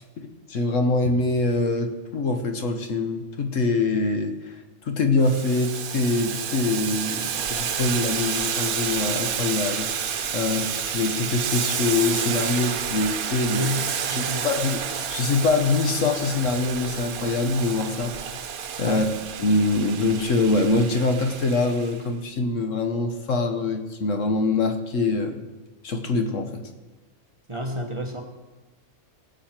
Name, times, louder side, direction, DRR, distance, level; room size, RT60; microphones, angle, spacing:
voice 1, 0.5-4.6 4.8-10.1 10.3-13.7 14.1-18.1 18.8-19.0 19.4-25.4 25.8-26.6, left 3 dB, 60° left, 6 dB, 1.3 m, -24 dB
Boiling, 5.2-22.0, right 8 dB, 75° right, 1.3 m, -30 dB
voice 2, 13.5-14.5 18.8-19.1 27.5-28.2, equal, 20° right, 1 dB, 1.2 m, -30 dB
19.5 x 7.7 x 4.4 m, 1.2 s
omnidirectional pair, 1.5 m